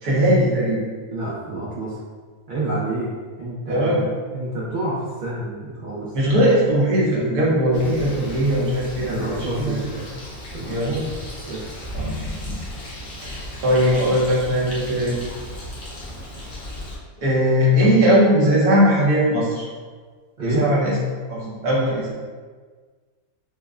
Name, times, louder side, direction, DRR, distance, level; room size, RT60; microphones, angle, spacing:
voice 1, 0.0-0.8 3.7-4.0 6.1-9.9 10.7-11.0 11.9-12.6 13.2-15.2 17.2-19.7 20.4-20.9 21.3-22.1, equal, 85° right, -6 dB, 1.6 m, -19 dB
voice 2, 1.1-2.0 2.5-3.1 3.4-6.1 9.1-9.8 10.5-11.0 11.5-11.6 20.4-20.7, right 2 dB, 60° right, -8 dB, 0.5 m, -28 dB
Bird, 7.7-17.0, left 1 dB, 60° left, 1.2 m, -35 dB
5.0 x 2.2 x 2.4 m, 1.5 s
omnidirectional pair, 1.6 m